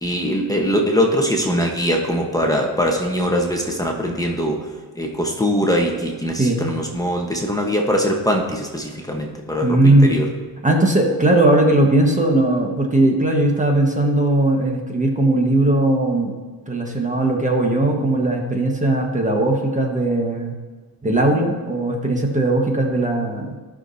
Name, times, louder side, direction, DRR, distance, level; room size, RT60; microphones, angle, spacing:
voice 1, 0.0-4.7 5.0-10.3, equal, 10° left, 1 dB, 1.1 m, -22 dB
voice 2, 9.6-10.1 10.6-16.3 16.7-20.5 21.0-23.5, right 2 dB, 20° right, 1 dB, 1.4 m, -18 dB
16.0 x 6.1 x 2.7 m, 1.4 s
cardioid pair, 110°, 42 cm